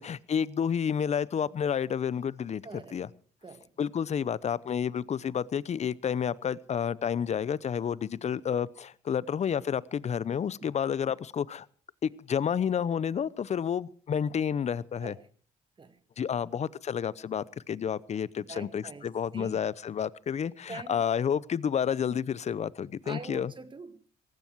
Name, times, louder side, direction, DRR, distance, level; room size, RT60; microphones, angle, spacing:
voice 1, 0.0-2.6 2.9-3.1 3.8-11.7 12.0-15.1 16.2-23.5, left 8 dB, 45° left, 0.8 m, -30 dB
voice 2, 2.6-3.0 3.4-3.7 10.6-10.7 15.0-15.2 15.8-16.0 18.5-19.6 20.7-21.0 23.0-24.1, right 4 dB, 30° right, 1.8 m, -44 dB
18.0 x 15.5 x 4.7 m
supercardioid pair, 70°, 16 cm